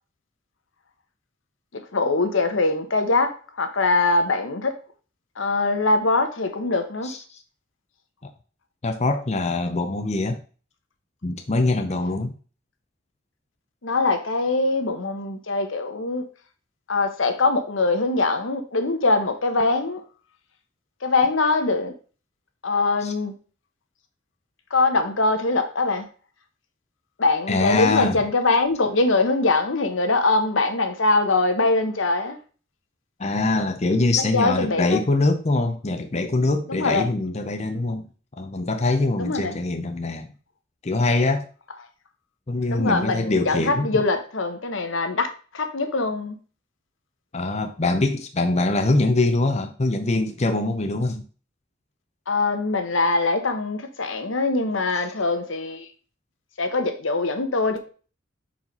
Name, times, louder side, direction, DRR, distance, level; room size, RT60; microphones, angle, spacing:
voice 1, 1.7-4.8 5.4-7.1 13.8-16.2 16.9-20.0 21.0-21.9 22.6-23.3 24.7-26.1 27.2-32.4 34.2-35.0 36.7-37.1 39.2-39.6 42.7-46.4 52.3-55.9 56.6-57.9, left 3 dB, 75° left, 1.1 m, -22 dB
voice 2, 7.0-7.4 8.2-8.3 8.8-10.4 11.2-12.3 23.0-23.1 27.5-28.2 33.2-38.1 38.4-40.3 40.8-41.5 42.5-44.0 47.3-51.2, left 2 dB, 35° left, 0.6 m, -23 dB
5.8 x 4.8 x 5.2 m
head